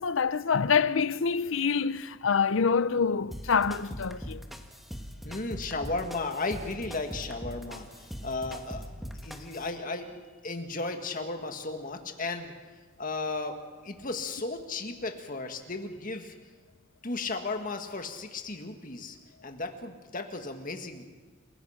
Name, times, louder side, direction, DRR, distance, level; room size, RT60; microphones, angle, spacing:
voice 1, 0.0-4.4, left 6 dB, 75° left, 0.6 m, -26 dB
sound 1, 3.3-9.7, equal, ahead, 1.4 m, -41 dB
voice 2, 5.2-12.5 13.0-13.6 13.8-16.4 17.0-19.2 19.4-21.0, left 3 dB, 45° left, 1.9 m, -35 dB
29.0 x 16.0 x 5.8 m
head